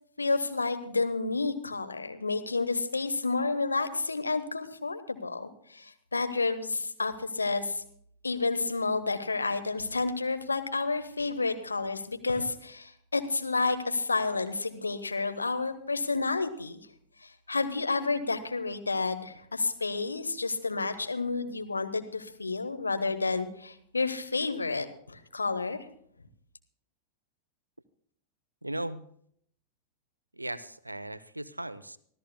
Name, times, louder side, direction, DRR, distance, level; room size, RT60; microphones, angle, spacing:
voice 1, 0.2-7.8 8.2-16.8 17.5-25.8, left 3 dB, 80° left, 8 dB, 1.1 m, -30 dB
voice 2, 28.6-29.0 30.3-32.0, right 1 dB, 85° right, 16 dB, 0.6 m, -37 dB
25.0 x 14.0 x 2.2 m, 0.65 s
figure-of-eight pair, 90°, 0 cm